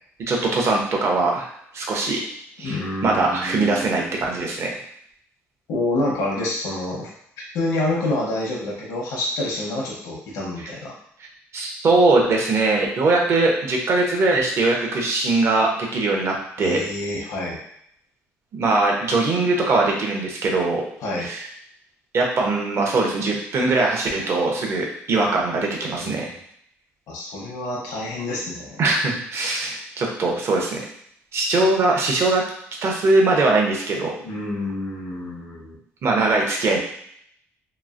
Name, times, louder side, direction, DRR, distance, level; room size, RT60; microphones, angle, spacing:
voice 1, 0.3-2.2 2.6-4.7 11.5-16.8 18.5-20.9 21.2-21.5 22.1-26.3 28.8-30.8 31.3-32.4 32.8-34.1 36.0-36.8, right 3 dB, 50° right, 0 dB, 0.8 m, -21 dB
voice 2, 2.6-4.3 5.7-7.1 7.5-11.0 15.3-15.4 16.6-17.6 21.0-21.3 26.0-26.2 27.1-28.8 34.2-35.8, left 2 dB, 75° left, -3 dB, 0.9 m, -28 dB
3.0 x 2.4 x 2.5 m, 0.68 s
cardioid pair, 85°, 6 cm